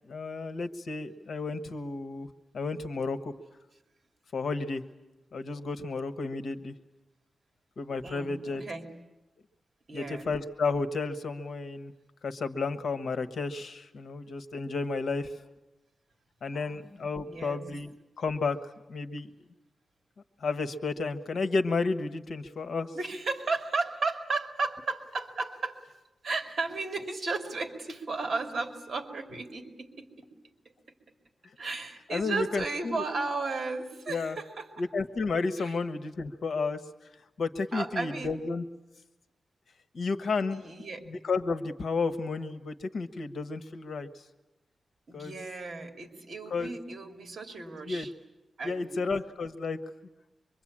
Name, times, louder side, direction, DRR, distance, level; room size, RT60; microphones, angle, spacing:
voice 1, 0.1-2.3 2.5-3.3 4.3-4.8 5.3-6.7 7.8-8.6 9.9-11.9 12.2-15.4 16.4-18.6 18.9-19.3 20.4-22.9 32.1-33.0 34.1-34.4 34.8-36.8 37.4-38.6 39.9-44.1 45.1-45.3 46.5-46.7 47.9-48.1 48.6-49.8, left 4 dB, 70° left, 9 dB, 1.3 m, -32 dB
voice 2, 8.0-8.9 9.9-10.3 16.5-16.8 17.2-17.7 22.9-25.8 26.2-30.3 31.6-34.7 35.6-35.8 37.7-38.3 40.5-41.1 45.1-48.1 48.6-49.0, right 3 dB, 50° right, 3 dB, 2.9 m, -34 dB
25.0 x 23.5 x 8.7 m, 1.0 s
wide cardioid pair, 170°, 0 cm